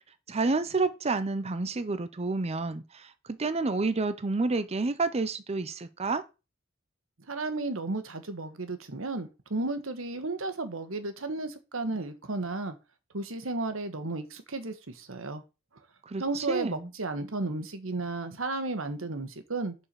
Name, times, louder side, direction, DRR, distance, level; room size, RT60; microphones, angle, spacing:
voice 1, 0.3-6.2 16.1-16.9, right 3 dB, 30° right, 0.6 m, -29 dB
voice 2, 7.3-12.8 13.1-15.4 16.2-19.7, right 3 dB, 85° right, 1.3 m, -33 dB
7.3 x 4.5 x 6.8 m
head